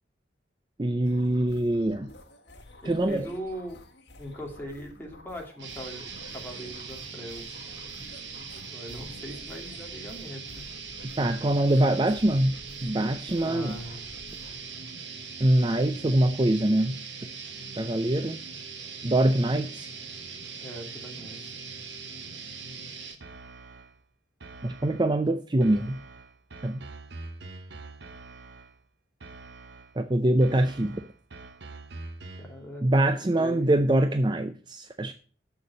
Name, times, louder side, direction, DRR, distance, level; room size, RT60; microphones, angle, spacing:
voice 1, 0.8-2.1 2.8-3.3 11.2-13.8 15.4-17.0 17.8-18.4 19.0-19.9 24.6-26.0 26.6-26.9 30.0-31.0 32.8-35.1, right 1 dB, 25° right, 0.5 m, -24 dB
sound 1, 1.0-14.6, left 1 dB, 70° left, 1.7 m, -51 dB
voice 2, 2.8-3.8 4.2-7.6 8.6-10.6 13.3-14.2 20.6-21.5 32.4-32.9 33.3-33.7, equal, 10° left, 2.5 m, -40 dB
sound 2, 5.6-23.1, right 5 dB, 90° right, 1.5 m, -41 dB
sound 3, 23.2-24.0 24.4-25.2 25.6-28.8 29.2-30.0 30.4-32.6, right 3 dB, 70° right, 0.9 m, -45 dB
7.2 x 6.6 x 7.6 m
head